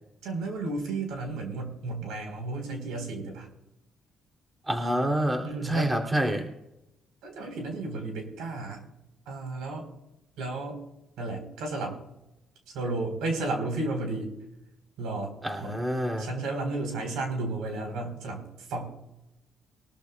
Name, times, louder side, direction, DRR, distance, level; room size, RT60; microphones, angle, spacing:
voice 1, 0.2-3.5 5.4-5.9 7.2-8.8 9.3-9.9 10.4-10.8 11.2-12.0 12.7-14.3 15.0-15.3 15.6-15.8 16.2-18.9, right 2 dB, 90° right, 3 dB, 4.1 m, -33 dB
voice 2, 4.7-6.5 15.4-16.3, right 1 dB, 20° right, 3 dB, 2.9 m, -27 dB
22.5 x 13.5 x 2.3 m, 0.91 s
cardioid pair, 90°, 0 cm